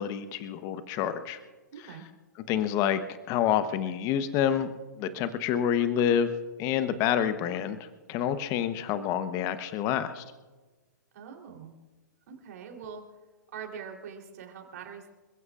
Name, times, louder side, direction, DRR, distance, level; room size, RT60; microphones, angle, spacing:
voice 1, 0.0-1.4 2.5-3.0 3.3-4.7 5.0-6.3 6.6-10.2, left 9 dB, 35° left, 11 dB, 1.0 m, -28 dB
voice 2, 1.7-2.1 11.1-11.8 12.3-13.0 13.5-15.1, right 7 dB, 55° right, 3 dB, 3.5 m, -43 dB
27.0 x 15.5 x 2.5 m, 1.3 s
hypercardioid pair, 120°, 10 cm